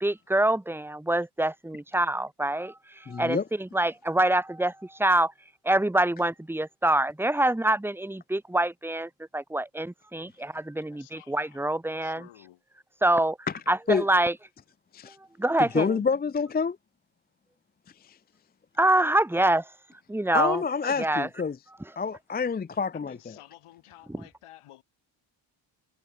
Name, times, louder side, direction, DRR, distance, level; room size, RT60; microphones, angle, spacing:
voice 1, 0.0-2.7 3.1-5.3 5.6-12.3 13.0-13.4 13.7-14.3 15.4-15.9 18.8-19.6 20.1-20.6 21.0-21.3, right 1 dB, 5° right, 1.0 m, -25 dB
voice 2, 3.1-3.4 13.9-14.0 14.9-15.2 15.6-16.8 20.3-21.6 22.0-23.2, left 5 dB, 20° left, 0.5 m, -27 dB
voice 3, 10.9-11.7 12.0-12.6 22.9-24.8, left 14 dB, 85° left, 6.6 m, -52 dB
cardioid pair, 80°, 50 cm